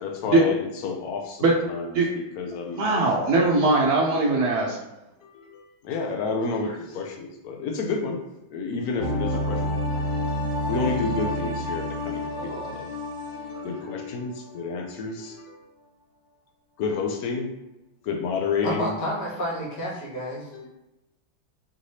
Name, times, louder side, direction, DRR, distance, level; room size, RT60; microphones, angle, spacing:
voice 1, 0.0-3.5 5.2-8.2 8.5-9.8 10.3-12.9 13.3-15.6 16.8-17.5 18.0-18.9 20.5-20.7, left 4 dB, 75° left, 2 dB, 0.8 m, -30 dB
voice 2, 2.8-4.8, right 3 dB, 70° right, -2 dB, 0.9 m, -20 dB
sound 1, 9.0-14.6 14.9-15.0, left 1 dB, 20° left, 0.5 m, -29 dB
voice 3, 12.4-12.7 13.5-13.6 18.6-20.5, equal, 55° left, -6 dB, 1.8 m, -31 dB
5.1 x 3.2 x 2.7 m, 0.94 s
omnidirectional pair, 2.3 m